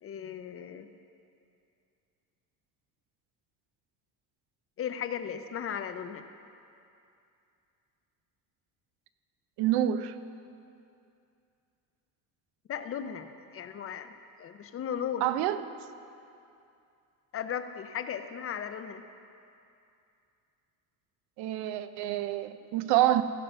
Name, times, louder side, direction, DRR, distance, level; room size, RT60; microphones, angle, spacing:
voice 1, 0.0-0.9 4.8-6.3 12.7-15.3 17.3-19.0, left 8 dB, 35° left, 9 dB, 0.5 m, -36 dB
voice 2, 9.6-10.1 15.2-15.6 21.4-23.2, right 12 dB, 80° right, 11 dB, 0.6 m, -27 dB
15.5 x 5.5 x 5.4 m, 2.6 s
cardioid pair, 120°, 38 cm